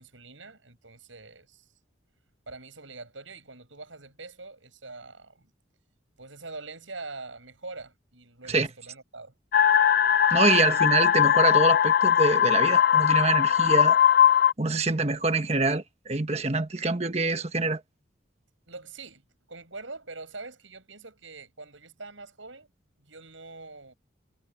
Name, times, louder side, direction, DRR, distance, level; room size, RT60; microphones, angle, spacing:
voice 1, 0.0-1.7 2.5-5.5 6.2-9.3 18.7-19.2 19.5-22.7 23.0-23.9, right 3 dB, 80° right, 8.0 m, -44 dB
sound 1, 9.5-14.5, left 9 dB, 50° left, 0.5 m, -20 dB
voice 2, 10.3-14.0 14.6-17.8, right 3 dB, 35° right, 1.3 m, -25 dB
head